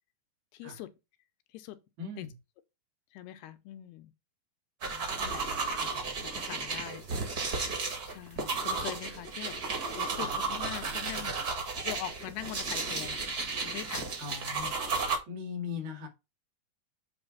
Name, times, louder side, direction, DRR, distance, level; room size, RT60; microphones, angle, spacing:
voice 1, 0.5-0.9 1.5-1.8 2.2-2.3 3.1-4.1 4.8-5.5 5.8-7.1 8.1-9.6 10.0-11.4 11.8-13.2 13.6-14.2, left 13 dB, 85° left, 2.7 m, -42 dB
voice 2, 2.0-2.3 10.1-10.4 10.8-11.0 14.2-14.7 15.3-16.1, left 5 dB, 70° right, 3.8 m, -39 dB
sound 1, 4.8-15.2, right 4 dB, 40° right, 1.4 m, -33 dB
8.0 x 3.5 x 5.5 m
omnidirectional pair, 4.5 m